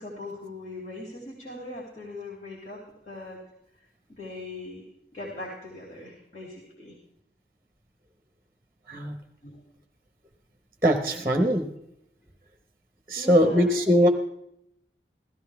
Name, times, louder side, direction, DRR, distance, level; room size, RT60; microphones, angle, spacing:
voice 1, 0.0-3.4 4.1-4.9 5.1-6.9 9.4-9.5 13.2-13.7, left 2 dB, 50° left, -3 dB, 3.0 m, -40 dB
voice 2, 10.8-11.6 13.1-14.1, equal, 15° right, 5 dB, 0.9 m, -21 dB
15.5 x 13.5 x 3.5 m, 0.77 s
head